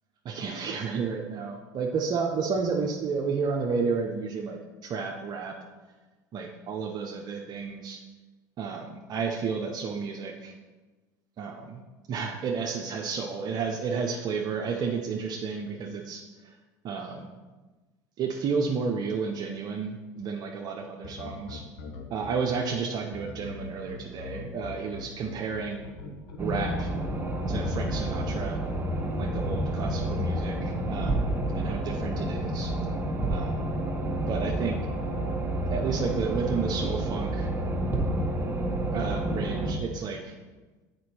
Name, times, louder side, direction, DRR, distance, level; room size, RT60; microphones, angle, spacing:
voice 1, 0.2-5.5 6.3-8.0 8.6-10.5 11.4-11.8 12.1-16.2 16.8-17.3 18.2-21.6 22.1-25.9 26.4-26.9 27.5-28.6 29.2-31.2 31.5-32.7 33.3-33.7 34.3-34.8 35.7-37.5 38.9-40.3, right 5 dB, 45° right, 1 dB, 0.8 m, -31 dB
sound 1, 21.0-22.3 23.1-27.1 27.9-29.5 30.3-30.6, left 4 dB, 70° left, 1.2 m, -41 dB
sound 2, 26.4-39.7, right 1 dB, 20° right, 1.4 m, -29 dB
7.7 x 5.1 x 4.4 m, 1.3 s
hypercardioid pair, 75°, 10 cm